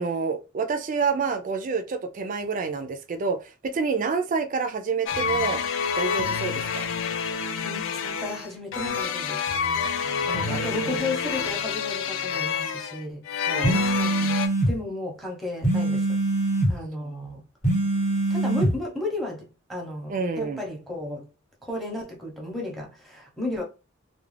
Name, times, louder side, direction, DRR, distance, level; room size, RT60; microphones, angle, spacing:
voice 1, 0.0-5.6 6.0-6.9 10.0-11.2 13.5-13.8 17.0-17.1 20.1-20.6, right 5 dB, 40° right, 0.3 m, -28 dB
sound 1, 5.1-14.5, left 6 dB, 75° left, 0.3 m, -28 dB
voice 2, 7.6-9.5 10.2-14.4 14.7-16.2 16.7-17.4 18.3-21.3 21.6-23.6, left 2 dB, ahead, 0.7 m, -34 dB
sound 2, 13.6-14.7 15.6-16.8 17.6-18.8, right 2 dB, 40° left, 0.8 m, -23 dB
2.3 x 2.1 x 3.2 m
head